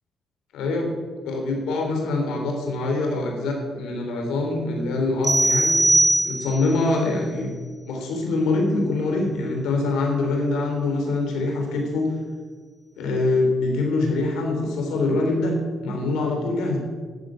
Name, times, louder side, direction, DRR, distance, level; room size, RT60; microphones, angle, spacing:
voice 1, 0.5-0.9 1.2-5.9 6.2-7.5 7.9-12.1 13.0-16.8, left 2 dB, 90° left, 2 dB, 3.7 m, -24 dB
sound 1, 5.2-6.8, right 1 dB, 20° right, 2.4 m, -20 dB
12.0 x 8.5 x 9.0 m, 1.6 s
cardioid pair, 90°, 0 cm